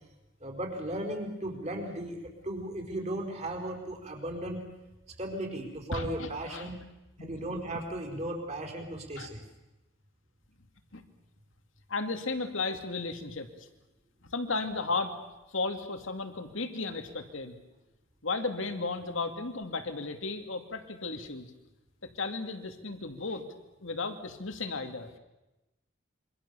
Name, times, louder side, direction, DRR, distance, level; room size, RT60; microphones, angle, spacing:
voice 1, 0.4-4.6 5.2-6.8 7.2-9.4, right 1 dB, 35° right, 2 dB, 4.9 m, -36 dB
voice 2, 5.9-6.8 7.2-7.4 9.2-9.3 10.9-11.0 11.9-13.7 14.2-15.2 15.5-17.5 18.2-21.5 22.0-23.4 23.8-25.1, left 3 dB, 70° left, 7 dB, 2.5 m, -34 dB
27.0 x 24.5 x 7.1 m, 1.0 s
head